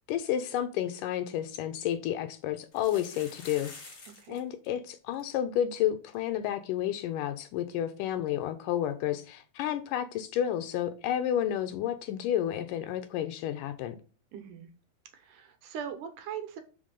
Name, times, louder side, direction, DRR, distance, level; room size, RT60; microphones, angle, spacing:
voice 1, 0.1-3.7 4.3-14.0, left 11 dB, 80° left, 2.1 m, -31 dB
sound 1, 1.4-1.5 2.6-4.4 4.6-4.7 4.9-5.2 5.7-5.8 6.1-6.2 8.3-8.4, left 3 dB, 35° left, 1.3 m, -48 dB
voice 2, 14.3-14.7 15.1-16.6, right 8 dB, 70° right, 2.1 m, -40 dB
6.0 x 5.1 x 5.2 m
omnidirectional pair, 4.1 m